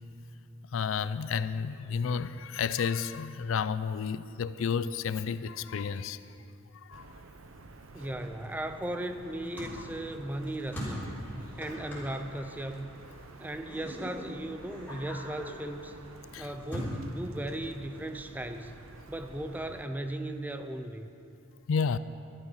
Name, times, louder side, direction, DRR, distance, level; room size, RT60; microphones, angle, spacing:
voice 1, 0.7-6.2 6.9-7.1 16.3-16.5 21.7-22.0, left 6 dB, 70° left, 0.4 m, -31 dB
sound 1, 6.9-19.9, right 3 dB, 80° right, 0.7 m, -50 dB
voice 2, 7.9-11.1 11.6-12.9 13.4-16.0 16.4-18.8 19.1-21.1, right 1 dB, 10° right, 0.5 m, -37 dB
sound 2, 9.2-16.9, equal, 10° left, 3.5 m, -42 dB
12.5 x 12.5 x 5.7 m
head